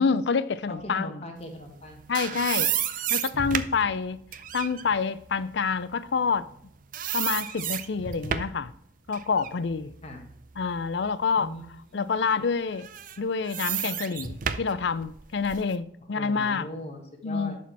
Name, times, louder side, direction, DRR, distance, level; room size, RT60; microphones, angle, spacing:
voice 1, 0.0-1.1 2.1-2.7 3.1-4.2 4.5-6.5 7.1-8.7 9.1-9.9 10.6-11.5 11.9-12.9 13.2-16.7 17.2-17.6, left 5 dB, 65° left, 0.5 m, -27 dB
voice 2, 0.7-2.4 10.0-10.2 11.4-11.6 11.9-12.2 16.1-17.6, left 1 dB, 30° left, 1.6 m, -39 dB
sound 1, 1.7-6.6 6.9-8.7 9.1-11.1 11.6-11.7 12.7-15.7, right 9 dB, 45° right, 0.5 m, -32 dB
11.5 x 4.3 x 4.6 m
head